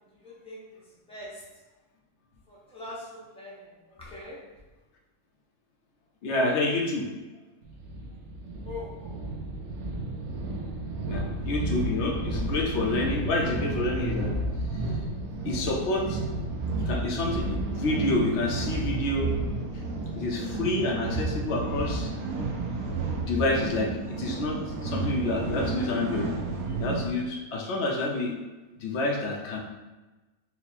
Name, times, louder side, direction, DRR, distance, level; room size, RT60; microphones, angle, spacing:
voice 1, 0.2-0.8 1.1-1.4 2.5-4.4 8.6-9.3, left 2 dB, 5° left, -5 dB, 0.5 m, -42 dB
voice 2, 6.2-7.1 11.0-14.3 14.8-15.0 15.4-16.2 16.8-19.3 20.1-22.1 23.3-26.3 26.8-28.4 28.8-29.6, left 2 dB, 60° left, 1 dB, 0.8 m, -28 dB
sound 1, 7.6-27.1, right 2 dB, 80° right, 1.1 m, -32 dB
4.1 x 2.1 x 4.1 m, 1.1 s
omnidirectional pair, 1.5 m